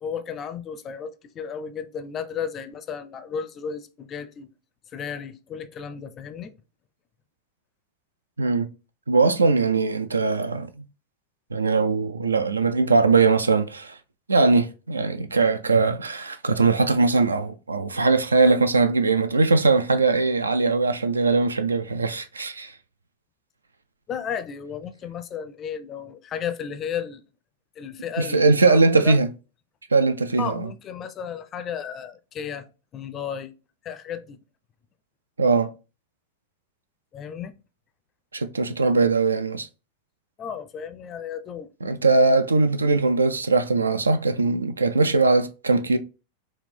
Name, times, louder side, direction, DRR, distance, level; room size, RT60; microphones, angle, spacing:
voice 1, 0.0-4.5 4.9-6.5 24.1-27.2 27.8-29.2 30.4-33.5 33.8-34.4 37.1-37.5 40.4-41.7, left 7 dB, 30° left, 0.4 m, -34 dB
voice 2, 8.4-8.7 9.1-10.7 11.5-14.0 14.3-22.7 28.2-29.3 29.9-30.7 35.4-35.7 38.3-39.7 41.8-46.0, right 3 dB, 75° right, 0.3 m, -20 dB
4.2 x 2.3 x 3.3 m
figure-of-eight pair, 90°, 0 cm